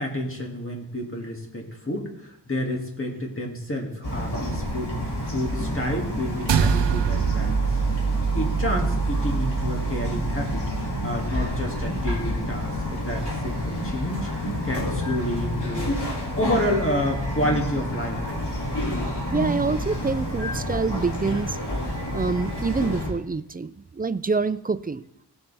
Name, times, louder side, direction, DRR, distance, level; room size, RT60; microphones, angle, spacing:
voice 1, 0.0-4.9 5.3-7.7 8.3-14.3 14.6-15.9 16.4-18.4, left 1 dB, 30° left, 0 dB, 2.3 m, -29 dB
Bird vocalization bird call bird song, 4.0-23.1, left 1 dB, 70° left, 3.2 m, -29 dB
sound 1, 6.5-11.1, right 7 dB, 90° right, 0.6 m, -25 dB
voice 2, 19.3-21.6 22.1-25.0, right 4 dB, 25° right, 14 dB, 0.4 m, -26 dB
17.5 x 7.1 x 3.5 m, 0.79 s
wide cardioid pair, 80°, 41 cm